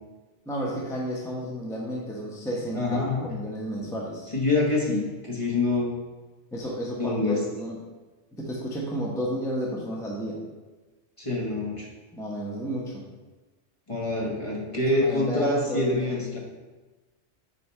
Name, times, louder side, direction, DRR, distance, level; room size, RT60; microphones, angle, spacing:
voice 1, 0.5-4.3 6.5-7.8 8.3-10.4 12.1-13.0 14.7-16.1, equal, 5° left, -3 dB, 0.8 m, -32 dB
voice 2, 2.7-3.3 4.3-5.9 7.0-7.4 11.2-11.9 13.9-16.4, left 2 dB, 30° left, -3 dB, 1.2 m, -26 dB
8.4 x 3.6 x 4.3 m, 1.2 s
omnidirectional pair, 1.2 m